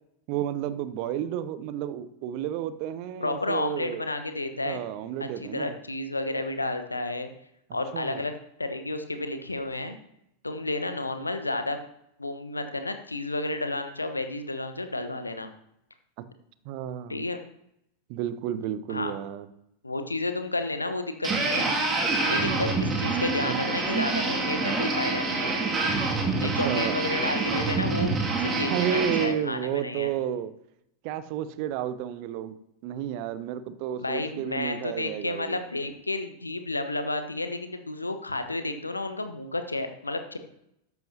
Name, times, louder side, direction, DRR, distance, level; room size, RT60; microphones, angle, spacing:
voice 1, 0.3-4.1 4.6-5.7 7.9-8.2 16.6-17.2 18.1-19.5 23.4-23.7 26.6-27.0 28.5-30.5 31.0-32.6 32.8-35.6, right 10 dB, 45° right, 14 dB, 0.8 m, -31 dB
voice 2, 3.2-4.8 5.4-7.3 7.7-8.3 8.6-10.0 10.4-11.8 12.2-15.5 17.1-17.4 18.9-19.1 19.8-21.7 22.3-25.5 26.4-28.1 28.4-30.1 34.0-40.4, left 2 dB, 80° left, 8 dB, 1.1 m, -31 dB
sound 1, 21.2-29.2, right 3 dB, 20° right, 2.3 m, -26 dB
13.5 x 10.5 x 2.9 m, 0.78 s
figure-of-eight pair, 90°, 0 cm